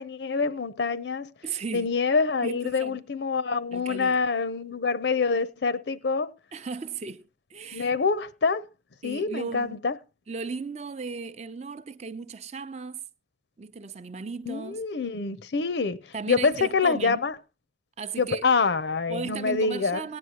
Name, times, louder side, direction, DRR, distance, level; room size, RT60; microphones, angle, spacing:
voice 1, 0.0-1.3 1.7-6.3 7.7-8.7 9.0-10.0 14.5-16.0 16.3-17.3 18.2-20.0, left 4 dB, 75° left, 0.6 m, -26 dB
voice 2, 1.4-2.0 2.4-3.0 3.7-4.2 6.5-7.2 7.5-7.9 9.0-9.8 10.3-13.0 13.6-14.8 16.1-17.2 18.0-18.4 19.1-20.2, right 4 dB, 35° right, 0.5 m, -36 dB
18.0 x 9.5 x 2.8 m
head